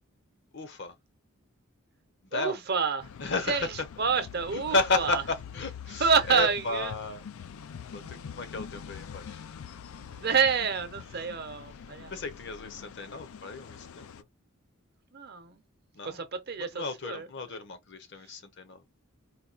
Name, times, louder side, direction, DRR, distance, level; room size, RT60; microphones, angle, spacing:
voice 1, 0.5-1.0 2.2-2.6 3.2-3.9 4.5-7.3 7.9-9.4 10.9-11.3 11.7-14.3 15.9-16.2 16.6-18.8, left 3 dB, 55° left, 0.8 m, -33 dB
voice 2, 2.3-3.1 3.5-3.6 4.0-5.2 6.0-6.9 8.0-8.3 10.1-12.1 15.1-15.6 16.0-17.3, right 5 dB, 50° right, 0.8 m, -28 dB
sound 1, 3.0-14.2, left 7 dB, 80° left, 0.4 m, -44 dB
4.2 x 2.3 x 2.4 m
head